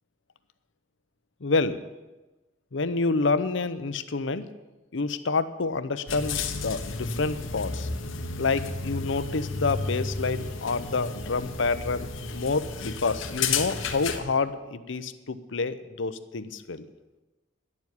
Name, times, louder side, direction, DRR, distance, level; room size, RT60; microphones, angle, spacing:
voice 1, 1.4-1.8 2.7-4.5 4.9-7.9 8.4-16.9, left 4 dB, 70° left, 12 dB, 0.7 m, -28 dB
sound 1, 6.1-14.2, left 4 dB, 90° left, 1.1 m, -32 dB
11.0 x 7.4 x 9.5 m, 1.1 s
head